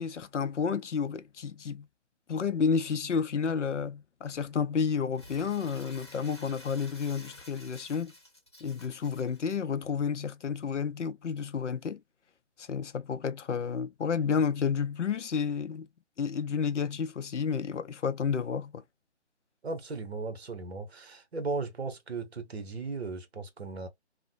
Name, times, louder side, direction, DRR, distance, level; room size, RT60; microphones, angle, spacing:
voice 1, 0.0-1.9 2.3-8.1 8.6-12.0 12.6-15.9 16.2-18.8, left 6 dB, 85° left, 0.5 m, -31 dB
Crumpling crinkling, 5.1-9.6, left 1 dB, 25° left, 0.5 m, -51 dB
voice 2, 19.6-23.9, right 3 dB, 65° right, 1.0 m, -36 dB
2.9 x 2.2 x 2.5 m
figure-of-eight pair, 155°, 35 cm